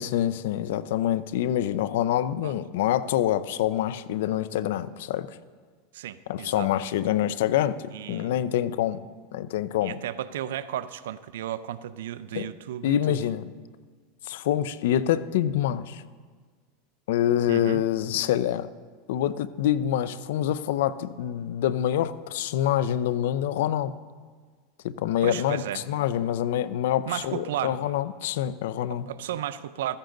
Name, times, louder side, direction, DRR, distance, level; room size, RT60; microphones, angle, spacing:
voice 1, 0.0-5.3 6.3-9.0 9.3-10.0 12.3-12.5 12.8-13.4 14.3-16.0 17.1-18.7 19.1-23.9 24.8-29.1, left 11 dB, 75° left, 15 dB, 0.6 m, -26 dB
voice 2, 5.9-6.7 7.9-8.4 9.8-13.2 17.5-17.8 25.2-25.8 27.1-27.8 28.9-30.0, right 11 dB, 85° right, 14 dB, 0.6 m, -34 dB
14.5 x 14.5 x 3.9 m, 1.5 s
supercardioid pair, 125°, 0 cm